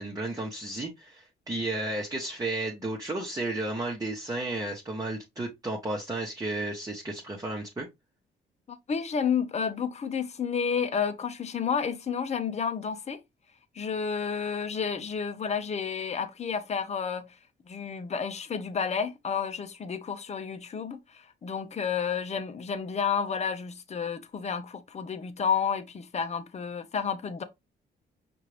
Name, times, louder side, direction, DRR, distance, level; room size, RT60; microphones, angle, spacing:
voice 1, 0.0-7.9, right 2 dB, 20° right, 1.1 m, -33 dB
voice 2, 8.7-13.2 13.7-17.3 17.7-27.4, left 6 dB, 35° left, 0.7 m, -31 dB
5.5 x 2.6 x 3.2 m
cardioid pair, 90°, 20 cm